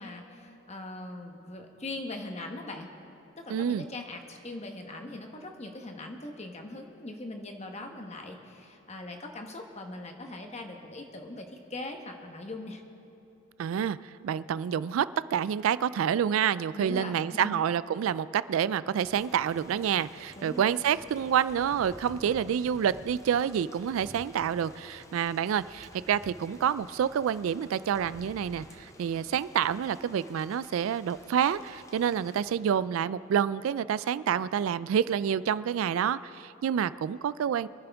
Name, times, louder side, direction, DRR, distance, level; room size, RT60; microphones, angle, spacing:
voice 1, 0.0-2.9 3.4-12.8 16.7-17.6 20.3-20.7, left 2 dB, 30° left, 3 dB, 1.1 m, -41 dB
voice 2, 3.5-3.8 13.6-14.0 14.2-37.7, right 8 dB, 85° right, 18 dB, 0.3 m, -28 dB
Thunder / Rain, 19.0-32.5, left 1 dB, 15° left, 0.6 m, -52 dB
24.0 x 10.5 x 3.5 m, 2.8 s
head